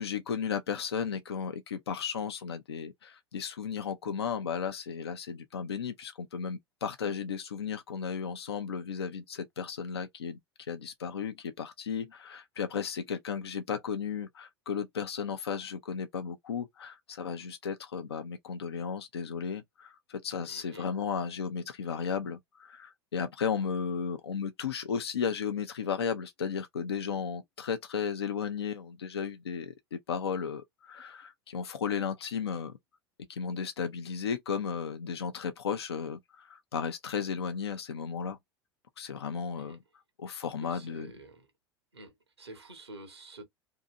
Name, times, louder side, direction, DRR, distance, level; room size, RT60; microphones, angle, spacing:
voice 1, 0.0-10.4 10.7-32.8 33.3-38.4 39.0-39.8 40.2-41.1, left 6 dB, 80° left, 0.4 m, -34 dB
voice 2, 20.5-20.9 39.6-39.8 40.6-41.5 41.9-43.4, right 1 dB, 90° right, 0.9 m, -49 dB
2.8 x 2.6 x 2.4 m
figure-of-eight pair, 80°, 13 cm